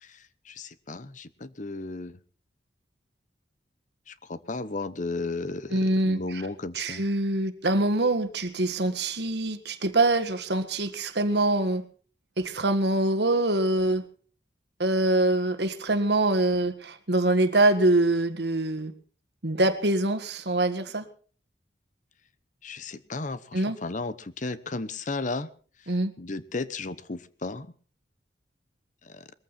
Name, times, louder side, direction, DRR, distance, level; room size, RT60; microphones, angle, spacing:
voice 1, 0.0-2.2 4.1-7.1 22.6-25.5 25.8-27.7 29.0-29.3, left 3 dB, 45° left, 15 dB, 0.9 m, -35 dB
voice 2, 5.7-6.2 6.8-11.8 12.4-14.0 14.8-18.9 19.4-21.1 23.5-23.8 25.9-26.1, right 2 dB, 70° right, 9 dB, 1.8 m, -24 dB
21.5 x 14.5 x 4.3 m, 0.41 s
head